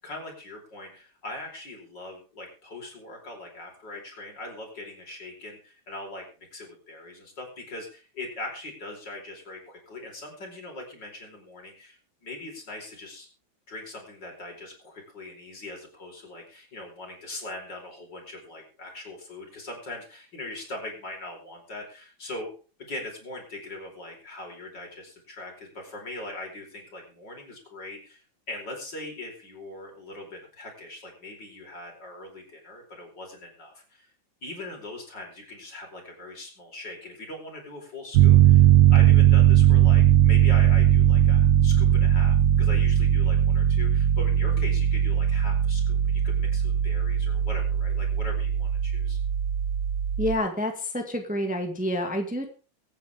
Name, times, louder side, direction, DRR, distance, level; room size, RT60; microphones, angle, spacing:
voice 1, 0.0-6.2 6.5-13.3 13.7-22.5 22.8-34.1 34.4-49.2, left 2 dB, 55° left, 1 dB, 5.3 m, -41 dB
Piano, 38.1-50.4, right 10 dB, 80° right, 1.7 m, -19 dB
voice 2, 50.2-52.5, left 1 dB, 5° right, 3 dB, 1.8 m, -28 dB
23.0 x 9.3 x 3.6 m, 0.36 s
omnidirectional pair, 2.2 m